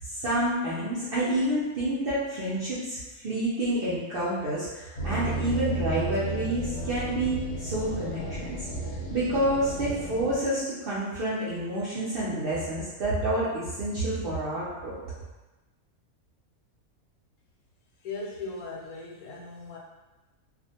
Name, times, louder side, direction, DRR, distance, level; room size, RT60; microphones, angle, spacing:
voice 1, 0.1-8.7 9.1-15.0, right 1 dB, 65° right, -9 dB, 0.5 m, -28 dB
sound 1, 5.0-10.3, right 3 dB, 50° left, 0.8 m, -33 dB
voice 2, 18.0-19.8, left 3 dB, 75° left, -3 dB, 1.0 m, -38 dB
2.4 x 2.1 x 2.7 m, 1.1 s
omnidirectional pair, 1.5 m